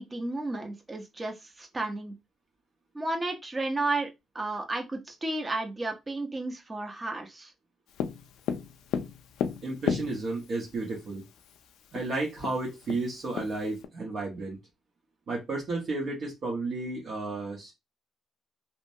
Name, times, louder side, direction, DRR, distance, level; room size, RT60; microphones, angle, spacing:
voice 1, 0.0-2.1 2.9-4.1 4.3-7.5, right 2 dB, 25° right, 0.7 m, -32 dB
Tap, 8.0-10.6 11.6-11.7 12.0-12.1 12.4-13.8, left 8 dB, 85° left, 0.3 m, -32 dB
voice 2, 9.6-11.2 11.9-14.6 15.3-17.7, right 2 dB, 55° right, 1.0 m, -32 dB
2.8 x 2.2 x 2.7 m
cardioid pair, 90°, 0 cm